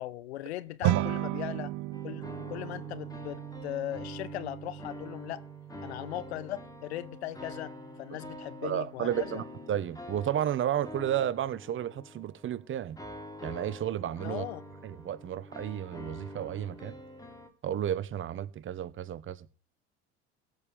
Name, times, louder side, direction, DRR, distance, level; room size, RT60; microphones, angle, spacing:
voice 1, 0.0-1.7 2.0-5.4 5.8-7.7 8.0-9.4 14.2-14.6, left 14 dB, 80° left, 1.0 m, -38 dB
sound 1, 0.8-10.3, right 15 dB, 65° right, 1.0 m, -37 dB
sound 2, 1.9-17.5, left 1 dB, 10° left, 3.2 m, -46 dB
voice 2, 8.6-13.0 13.4-14.4 14.8-17.0 17.6-19.5, right 10 dB, 40° right, 1.1 m, -32 dB
15.5 x 5.5 x 7.0 m
hypercardioid pair, 75°, 32 cm